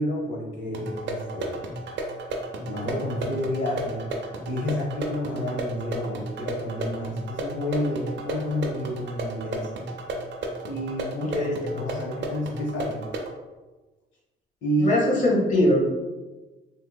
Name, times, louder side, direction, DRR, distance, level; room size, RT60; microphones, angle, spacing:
voice 1, 0.0-1.6 2.6-4.0 4.5-9.7 10.7-11.4 11.7-13.0 14.6-14.9, equal, 75° left, -4 dB, 0.8 m, -29 dB
sound 1, 0.7-13.3, right 2 dB, 65° right, 0.6 m, -33 dB
voice 2, 11.2-11.8 14.8-15.8, left 1 dB, 40° left, -3 dB, 1.0 m, -22 dB
3.6 x 2.7 x 2.2 m, 1.2 s
cardioid pair, 90°, 20 cm